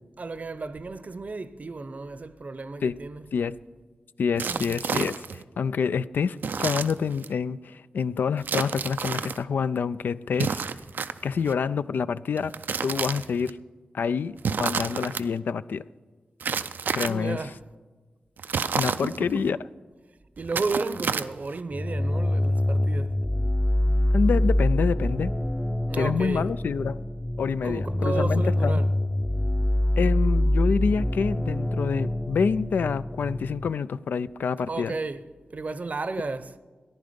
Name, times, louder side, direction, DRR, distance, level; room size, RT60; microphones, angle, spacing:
voice 1, 0.2-3.3 4.5-4.8 17.1-17.6 19.0-19.3 20.4-23.1 25.9-26.5 27.6-28.9 34.7-35.2 35.5-36.6, right 3 dB, 50° right, 0.7 m, -33 dB
voice 2, 4.2-10.7 11.2-12.5 12.8-13.6 13.9-15.8 16.9-17.5 18.8-19.6 24.1-25.3 26.0-27.0 27.4-28.8 30.0-34.9, left 6 dB, 90° left, 0.3 m, -27 dB
sound 1, 4.4-5.4 6.4-7.3 8.4-9.4 10.3-11.5 12.4-13.5 14.4-15.2 16.4-17.3 18.4-19.5 20.4-21.6, right 6 dB, 90° right, 0.4 m, -30 dB
sound 2, 21.7-33.7, left 1 dB, 10° left, 0.5 m, -25 dB
14.5 x 10.5 x 5.2 m
cardioid pair, 65°, 3 cm